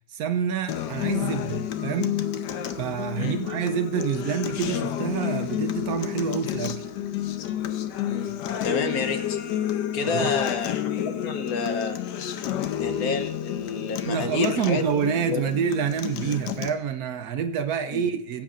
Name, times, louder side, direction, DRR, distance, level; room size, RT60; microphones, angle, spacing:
voice 1, 0.1-2.2 2.8-6.8 10.1-10.4 14.1-18.4, right 7 dB, 70° right, 1.0 m, -27 dB
Acoustic guitar, 0.7-16.7, left 10 dB, 85° left, 1.3 m, -30 dB
voice 2, 3.2-3.5 8.1-9.4 9.9-12.0 12.8-15.5 16.2-16.4 17.9-18.0, left 5 dB, 65° left, 1.2 m, -30 dB
17.5 x 8.3 x 2.5 m
omnidirectional pair, 1.8 m